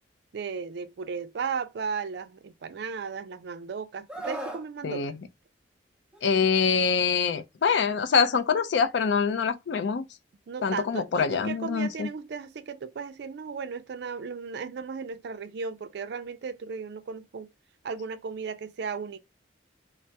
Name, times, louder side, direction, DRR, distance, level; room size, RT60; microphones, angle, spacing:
voice 1, 0.3-5.2 10.5-17.5 17.8-19.2, right 5 dB, 60° right, 0.4 m, -35 dB
Screaming, 4.1-4.7 6.1-6.4, right 1 dB, 5° right, 0.5 m, -36 dB
voice 2, 6.2-10.0 10.6-12.1, left 5 dB, 65° left, 0.4 m, -25 dB
3.2 x 2.0 x 2.7 m
head